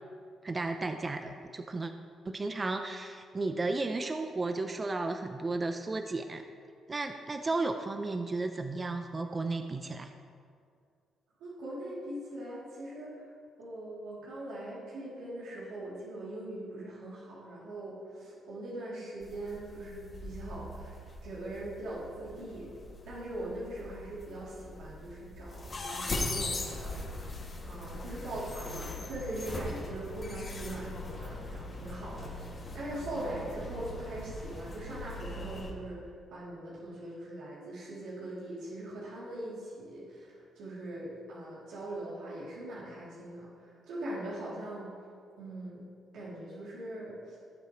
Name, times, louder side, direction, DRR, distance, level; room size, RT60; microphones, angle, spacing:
voice 1, 0.4-1.9 2.2-6.4 6.9-10.1, right 3 dB, 30° right, 6 dB, 0.6 m, -34 dB
voice 2, 11.4-13.3 13.6-22.7 23.0-27.4 27.7-44.9 45.4-45.8 46.1-47.4, right 1 dB, 85° right, -8 dB, 3.0 m, -41 dB
sound 1, 19.2-35.7, left 2 dB, 40° left, 2.3 m, -40 dB
17.5 x 8.0 x 3.2 m, 2.2 s
cardioid pair, 90°, 0 cm